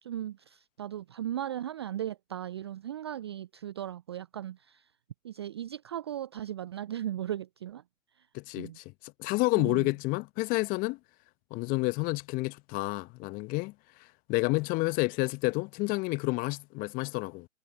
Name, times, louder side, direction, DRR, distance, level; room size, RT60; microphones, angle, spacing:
voice 1, 0.0-4.9 5.2-7.8 8.2-8.3 8.6-8.8 9.6-9.9, right 11 dB, 20° right, 0.4 m, -37 dB
voice 2, 8.3-11.0 11.5-13.7 14.3-17.5, left 24 dB, 20° left, 1.1 m, -29 dB
figure-of-eight pair, 120°, 40 cm